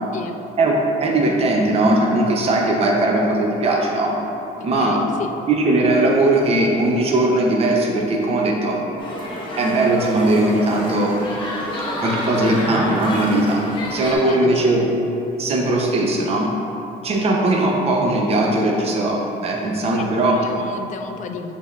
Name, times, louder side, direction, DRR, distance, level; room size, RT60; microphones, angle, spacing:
voice 1, 0.6-4.2 4.6-5.0 5.5-8.8 9.6-11.1 12.0-13.6 13.9-14.8 15.4-16.5 17.0-20.4, right 2 dB, 35° right, -1 dB, 0.6 m, -19 dB
voice 2, 4.7-5.3 12.4-12.7 14.2-14.9 19.6-21.5, left 6 dB, 45° left, 6 dB, 0.4 m, -32 dB
sound 1, 9.0-14.1, left 1 dB, 30° left, 0.9 m, -29 dB
6.2 x 3.5 x 2.4 m, 2.9 s
cardioid pair, 110°, 17 cm